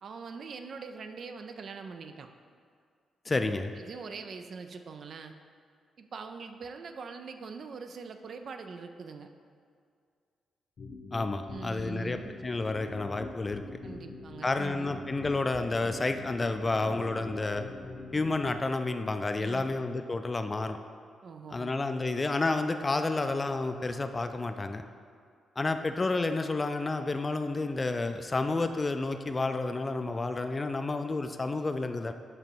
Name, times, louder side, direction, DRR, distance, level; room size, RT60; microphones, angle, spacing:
voice 1, 0.0-2.3 3.3-3.4 3.8-5.3 6.0-9.3 11.5-12.4 13.8-15.0 19.4-19.8 21.2-21.7, right 5 dB, 60° right, 7 dB, 0.4 m, -43 dB
voice 2, 3.3-3.7 11.1-13.6 14.4-17.6 18.1-20.8 21.5-24.8 25.6-32.1, left 3 dB, 25° left, 8 dB, 0.3 m, -30 dB
sound 1, 10.8-18.7, left 3 dB, 55° left, 0.7 m, -44 dB
7.6 x 3.0 x 4.5 m, 2.2 s
cardioid pair, 90°, 0 cm